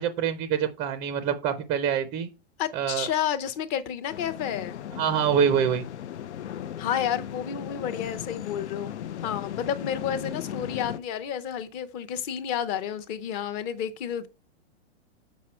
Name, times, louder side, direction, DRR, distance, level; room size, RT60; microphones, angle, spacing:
voice 1, 0.0-2.3 2.7-3.1 5.0-5.9, right 8 dB, 15° right, 0.5 m, -25 dB
voice 2, 2.6-4.8 6.8-8.9 9.2-14.3, left 9 dB, 25° left, 0.7 m, -30 dB
sound 1, 4.1-11.0, left 10 dB, 85° left, 0.7 m, -37 dB
7.4 x 5.1 x 4.3 m
hypercardioid pair, 150°, 33 cm